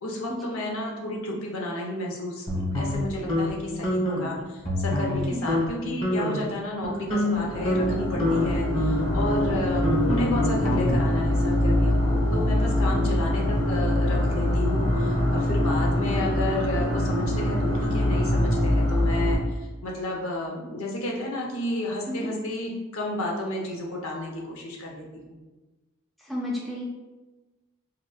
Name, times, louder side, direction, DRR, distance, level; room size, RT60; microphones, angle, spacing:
voice 1, 0.0-25.4, left 1 dB, 90° left, -1 dB, 0.7 m, -32 dB
sound 1, 2.5-3.5 3.8-4.2 4.6-5.2 5.5-5.7 6.0-6.4 6.8-11.2, left 1 dB, 25° left, 1.0 m, -26 dB
voice 2, 5.2-5.5 12.8-13.0 22.1-22.3 26.2-26.8, left 1 dB, ahead, -4 dB, 0.4 m, -33 dB
sound 2, 7.4-19.4, left 1 dB, 70° left, 1.0 m, -24 dB
4.8 x 2.1 x 2.3 m, 1.1 s
head